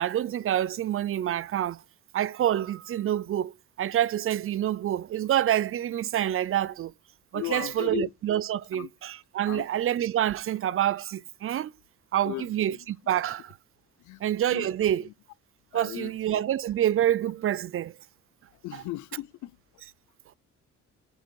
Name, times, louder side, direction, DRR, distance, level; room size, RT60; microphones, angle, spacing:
voice 1, 0.0-1.8 2.1-6.9 7.3-11.7 12.1-13.6 14.2-15.1 15.7-17.9 18.7-18.8, right 11 dB, 45° right, 0.4 m, -27 dB
voice 2, 7.3-8.1 8.7-8.9 9.5-9.7 12.2-12.8 14.0-14.2 14.5-14.7 15.0-15.1 15.7-16.1 18.6-19.5, left 16 dB, 75° left, 0.4 m, -36 dB
7.8 x 4.7 x 4.6 m
cardioid pair, 90°, 30 cm